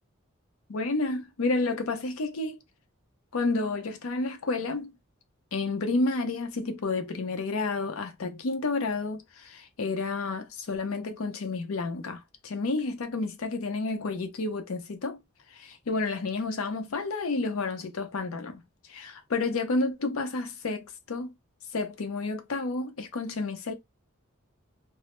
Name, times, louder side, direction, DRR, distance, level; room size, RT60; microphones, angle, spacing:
voice 1, 0.7-2.6 3.3-4.9 5.5-15.2 15.6-18.6 18.9-21.3 21.7-23.7, left 3 dB, 80° left, 0.5 m, -30 dB
2.1 x 2.0 x 2.9 m
head